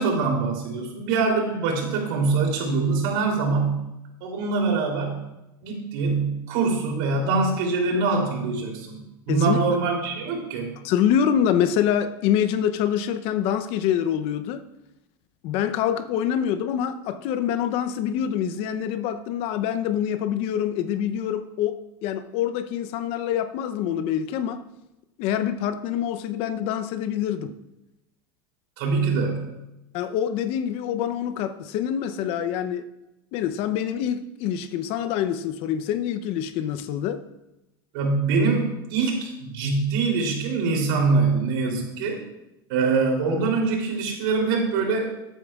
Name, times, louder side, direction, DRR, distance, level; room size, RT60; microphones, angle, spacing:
voice 1, 0.0-3.9 4.2-5.2 5.6-9.0 9.3-10.7 28.8-29.4 37.9-42.2 42.7-45.1, right 4 dB, 70° right, 0 dB, 3.3 m, -24 dB
voice 2, 9.3-9.6 10.8-14.6 15.4-24.6 25.2-27.5 29.9-32.8 33.3-37.2, left 9 dB, 55° left, 11 dB, 0.7 m, -25 dB
14.0 x 9.1 x 2.4 m, 0.92 s
supercardioid pair, 115°, 12 cm